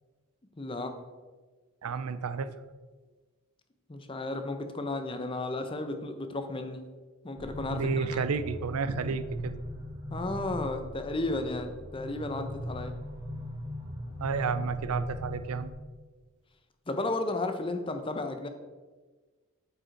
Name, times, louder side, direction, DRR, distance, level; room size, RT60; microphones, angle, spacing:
voice 1, 0.6-1.0 3.9-6.9 7.2-8.2 10.1-12.9 16.9-18.5, left 2 dB, 25° left, 7 dB, 0.6 m, -33 dB
voice 2, 1.8-2.5 7.7-9.6 14.2-15.7, right 5 dB, 85° right, 12 dB, 0.5 m, -31 dB
sound 1, 7.4-15.7, left 1 dB, 20° right, 1.1 m, -39 dB
7.9 x 5.3 x 4.4 m, 1.3 s
head